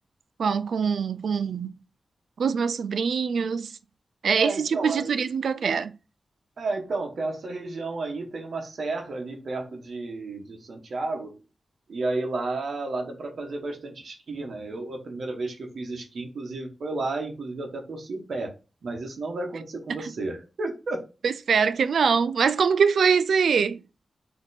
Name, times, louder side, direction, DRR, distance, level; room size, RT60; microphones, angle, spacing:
voice 1, 0.4-1.7 2.4-3.7 4.2-5.9 21.2-23.8, right 6 dB, 85° right, 0.3 m, -23 dB
voice 2, 4.2-5.1 6.6-11.4 11.9-18.5 18.8-21.0, right 3 dB, 65° right, 0.9 m, -32 dB
4.2 x 2.8 x 4.0 m
wide cardioid pair, 170°, 0 cm